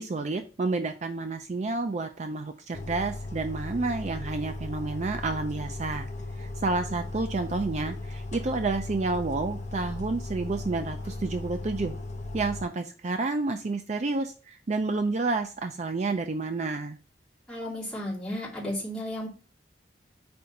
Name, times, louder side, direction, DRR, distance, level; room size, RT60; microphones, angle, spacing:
voice 1, 0.0-6.1 6.4-12.0 12.3-17.0, right 3 dB, 40° right, 7 dB, 0.4 m, -30 dB
sound 1, 2.7-12.7, left 2 dB, 40° left, 0.7 m, -37 dB
voice 2, 17.5-19.3, left 1 dB, 5° left, -7 dB, 2.6 m, -33 dB
4.7 x 4.3 x 5.2 m, 0.36 s
head